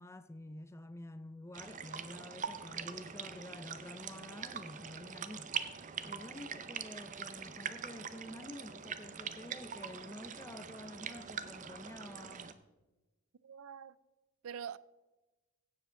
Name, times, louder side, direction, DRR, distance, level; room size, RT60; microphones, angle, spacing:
voice 1, 0.0-5.5 6.0-12.5, left 1 dB, 15° left, 0.5 m, -49 dB
sound 1, 1.5-12.5, right 7 dB, 35° right, 0.6 m, -43 dB
voice 2, 13.4-14.0 14.4-14.8, right 8 dB, 85° right, 0.4 m, -44 dB
16.0 x 7.5 x 3.7 m
head